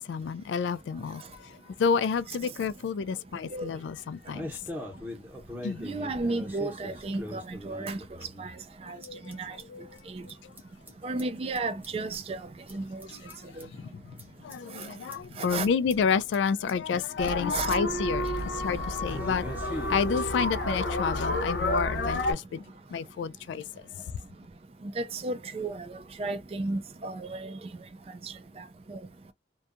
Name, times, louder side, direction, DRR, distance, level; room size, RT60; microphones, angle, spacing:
voice 1, 0.0-4.5 5.6-5.8 8.9-9.9 10.4-10.5 13.7-14.0 14.4-22.6 22.9-23.6, left 6 dB, 80° left, 0.3 m, -30 dB
sound 1, 3.9-9.3 9.6-9.7 9.9-10.0 10.2-10.6 10.9-13.6 14.2-14.3 14.5-15.2 15.5-15.6 15.9-16.0 16.3-16.7 17.0-17.1 17.3-18.0 18.2-18.4 19.0-20.3, left 1 dB, 10° right, 0.8 m, -41 dB
voice 2, 5.8-8.0 8.4-8.5 8.8-9.0 9.3-9.6 10.1-10.2 11.0-12.4 12.7-13.1 13.6-13.7 14.8-14.9 15.4-15.7 17.5-17.8 24.8-27.6 28.2-29.0, right 3 dB, 30° right, 0.3 m, -33 dB
sound 2, 17.2-22.3, left 1 dB, 65° left, 0.7 m, -30 dB
2.6 x 2.2 x 2.5 m
head